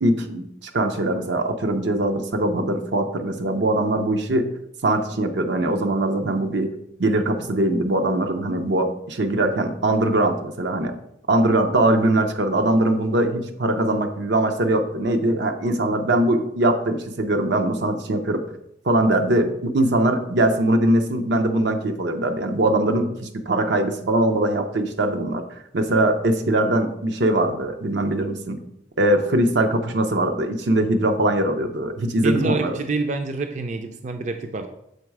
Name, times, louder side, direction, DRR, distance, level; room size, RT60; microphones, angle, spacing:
voice 1, 0.0-4.5 4.8-6.7 7.0-10.9 11.3-18.4 18.8-25.4 25.7-28.6 29.0-32.8, right 1 dB, 85° right, 6 dB, 0.7 m, -21 dB
voice 2, 32.2-34.7, right 3 dB, 40° right, 6 dB, 0.4 m, -27 dB
6.8 x 3.9 x 4.7 m, 0.78 s
head